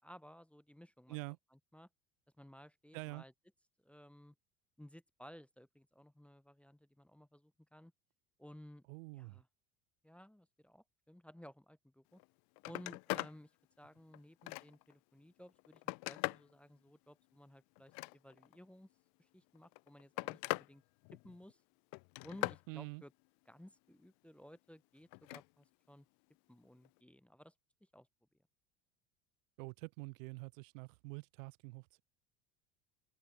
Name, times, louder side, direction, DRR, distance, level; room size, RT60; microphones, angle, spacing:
voice 1, 0.0-1.2 1.5-1.9 2.4-3.3 3.8-4.3 4.8-7.9 8.4-8.8 9.1-9.5 10.0-12.2 12.6-13.5 13.8-18.9 19.2-20.8 21.2-21.6 22.2-23.1 23.5-26.1 26.5-27.5 27.8-28.1, equal, 5° left, 0.9 m, -57 dB
voice 2, 2.9-3.2 8.9-9.4 22.7-23.0 29.6-32.0, right 27 dB, 60° right, 0.8 m, -46 dB
Telephone, 12.1-12.3 12.6-13.4 13.8-14.9 15.5-16.5 17.8-18.6 19.6-20.7 21.0-21.5 21.9-22.6 25.1-25.5 26.9-27.0, left 32 dB, 50° left, 0.9 m, -41 dB
open air
figure-of-eight pair, 70°, 45 cm